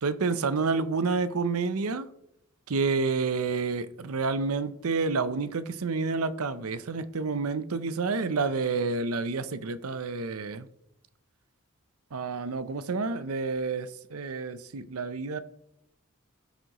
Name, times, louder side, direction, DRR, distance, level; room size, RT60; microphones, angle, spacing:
voice 1, 0.0-2.1 2.7-10.7 12.1-15.4, right 4 dB, 75° right, 0.6 m, -29 dB
17.5 x 6.4 x 3.0 m
head